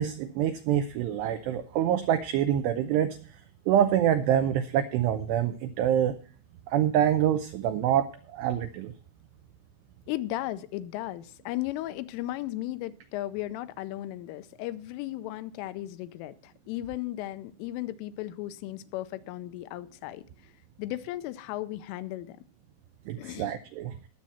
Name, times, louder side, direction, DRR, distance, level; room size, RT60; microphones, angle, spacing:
voice 1, 0.0-3.2 3.7-6.2 6.7-8.9 23.1-23.9, right 10 dB, 85° right, 9 dB, 2.4 m, -26 dB
voice 2, 10.1-20.2 20.8-22.4 23.2-23.5, left 15 dB, 85° left, 13 dB, 3.2 m, -35 dB
19.5 x 7.4 x 4.2 m, 0.41 s
omnidirectional pair, 5.7 m